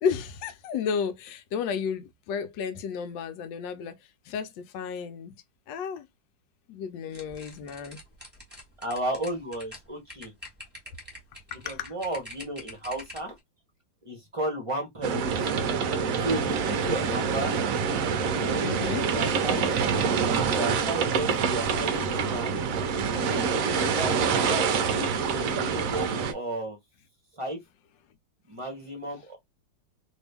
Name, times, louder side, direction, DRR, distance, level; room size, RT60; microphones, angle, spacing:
voice 1, 0.0-4.0 4.3-5.3 5.7-6.1 6.7-8.0 11.5-11.9 18.6-19.0, left 6 dB, 80° left, 1.3 m, -32 dB
sound 1, 7.1-13.4, equal, 5° right, 1.3 m, -45 dB
voice 2, 8.8-10.3 11.6-13.4 14.0-15.6 16.2-17.6 18.3-19.7 20.3-22.5 23.0-26.8 27.3-27.6 28.5-29.4, right 1 dB, 25° right, 0.7 m, -34 dB
sound 2, 15.0-26.3, right 6 dB, 70° right, 0.8 m, -26 dB
2.9 x 2.6 x 3.3 m
omnidirectional pair, 2.0 m